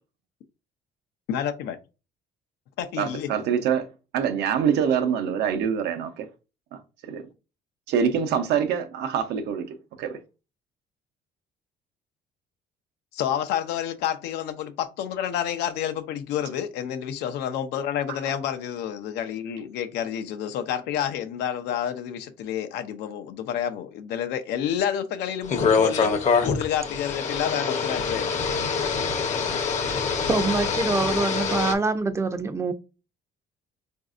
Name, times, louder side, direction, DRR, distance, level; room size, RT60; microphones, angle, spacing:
voice 1, 1.3-1.8 2.8-3.3 13.1-28.4, left 9 dB, 80° left, 0.5 m, -29 dB
voice 2, 3.0-3.9 4.1-6.3 7.1-7.2 7.9-9.7 10.0-10.2, right 7 dB, 80° right, 0.7 m, -25 dB
sound 1, 25.4-31.7, left 5 dB, 45° left, 0.7 m, -25 dB
voice 3, 30.3-32.7, right 3 dB, 15° right, 0.4 m, -25 dB
4.0 x 2.6 x 2.4 m
cardioid pair, 110°, 17 cm